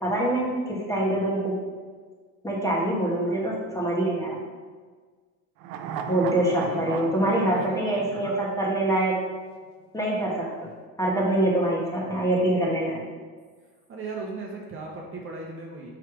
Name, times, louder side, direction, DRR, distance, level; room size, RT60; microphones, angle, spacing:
voice 1, 0.0-1.6 2.4-4.4 6.1-9.2 9.9-10.7 11.0-13.0, right 1 dB, 10° left, -4 dB, 1.4 m, -25 dB
sound 1, 5.6-9.0 9.3-9.4, right 8 dB, 80° right, 0.7 m, -37 dB
voice 2, 5.8-8.3 13.9-15.9, right 3 dB, 35° right, -2 dB, 1.0 m, -38 dB
5.6 x 4.9 x 4.8 m, 1.5 s
cardioid pair, 140°, 36 cm